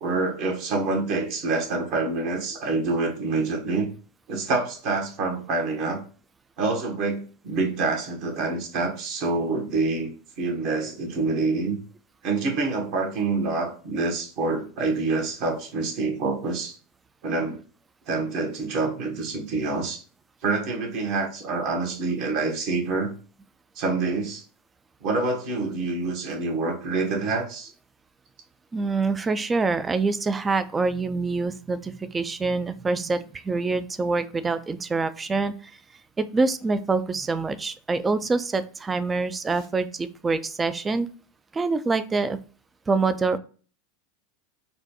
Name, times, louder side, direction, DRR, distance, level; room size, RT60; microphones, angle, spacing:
voice 1, 0.0-3.9 4.3-6.0 6.6-10.1 10.4-11.8 12.2-16.8 17.2-17.6 18.1-20.0 20.4-23.1 23.7-24.4 25.0-27.7, right 3 dB, 55° right, 2 dB, 1.3 m, -26 dB
voice 2, 28.7-35.5 36.2-41.1 41.5-42.4 42.9-43.4, right 3 dB, 20° right, 13 dB, 0.4 m, -25 dB
4.2 x 2.2 x 2.9 m, 0.39 s
hypercardioid pair, 90°, 0 cm